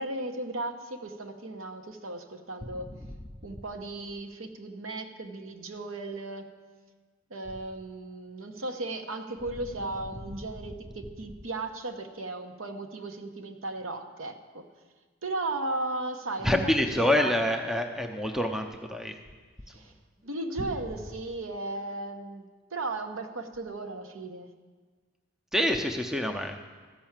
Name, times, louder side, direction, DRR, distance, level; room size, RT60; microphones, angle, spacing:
voice 1, 0.0-2.9 3.4-6.5 7.3-14.7 15.2-17.4 19.7-19.9 20.2-24.5, right 2 dB, 75° right, 6 dB, 0.9 m, -36 dB
voice 2, 16.4-19.1 25.5-26.6, left 1 dB, ahead, 5 dB, 0.5 m, -26 dB
13.5 x 5.7 x 7.3 m, 1.4 s
head